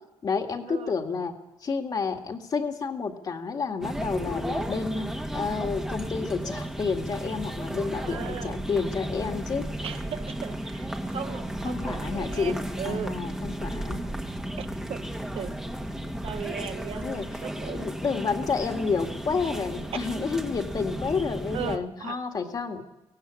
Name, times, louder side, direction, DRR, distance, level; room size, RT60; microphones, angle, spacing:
voice 1, 0.2-1.3 1.6-9.7 11.6-12.6 12.8-14.0 17.0-17.3 17.7-22.8, left 5 dB, 40° left, 4 dB, 2.1 m, -30 dB
sound 1, 3.8-21.8, right 1 dB, 5° right, 1.6 m, -34 dB
voice 2, 8.0-8.6 9.8-13.2 14.6-15.0 15.3-15.6 16.2-17.9 19.9-20.0 21.5-22.2, right 8 dB, 60° right, 9 dB, 1.2 m, -37 dB
23.5 x 18.0 x 8.5 m, 0.99 s
wide cardioid pair, 165°, 11 cm